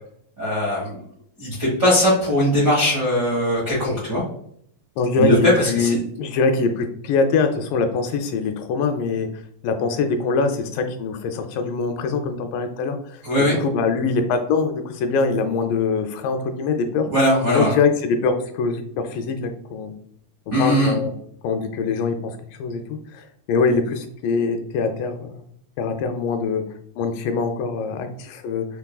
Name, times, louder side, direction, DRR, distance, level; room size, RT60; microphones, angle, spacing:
voice 1, 0.4-0.9 1.4-4.2 5.2-6.0 13.2-13.5 17.1-17.7 20.5-20.9, left 1 dB, 55° right, -6 dB, 1.1 m, -19 dB
voice 2, 5.0-9.3 9.6-17.1 17.5-19.9 20.6-21.1 21.4-22.3 22.6-25.4 25.8-26.6 27.0-28.7, left 4 dB, 80° left, 6 dB, 2.1 m, -23 dB
6.0 x 3.4 x 2.3 m, 0.66 s
omnidirectional pair, 4.1 m